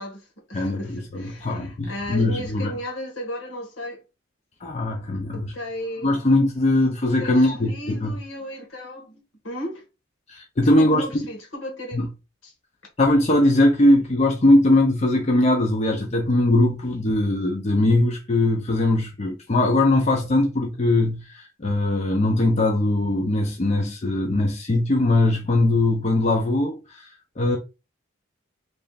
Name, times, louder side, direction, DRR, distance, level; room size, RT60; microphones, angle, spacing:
voice 1, 0.0-4.0 5.3-6.1 7.2-9.8 10.8-12.1 12.4-12.5, equal, 80° left, 1.6 m, -35 dB
voice 2, 0.5-2.7 4.6-5.5 6.0-8.2 10.3-11.2 11.9-12.1 13.0-27.1 27.4-27.6, left 1 dB, 35° left, 0.6 m, -20 dB
3.3 x 2.5 x 3.9 m
head